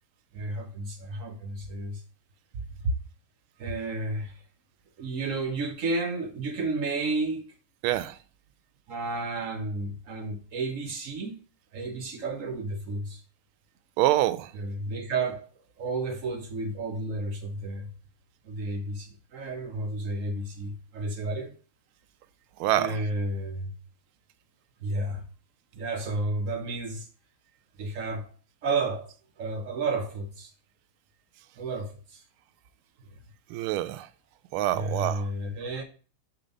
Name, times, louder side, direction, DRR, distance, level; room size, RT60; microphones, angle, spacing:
voice 1, 0.3-2.0 2.5-3.0 3.6-4.4 5.0-7.5 8.9-11.4 11.7-13.2 14.5-15.5 15.8-17.9 18.4-21.5 22.7-23.8 24.8-25.3 25.7-27.1 27.8-28.3 28.6-29.1 29.4-30.5 31.6-32.2 34.7-35.8, right 2 dB, 65° right, 0.8 m, -32 dB
voice 2, 7.8-8.1 14.0-14.5 22.6-23.0 33.5-34.1 34.5-35.2, right 14 dB, 85° right, 1.4 m, -26 dB
6.8 x 3.5 x 5.3 m
omnidirectional pair, 2.3 m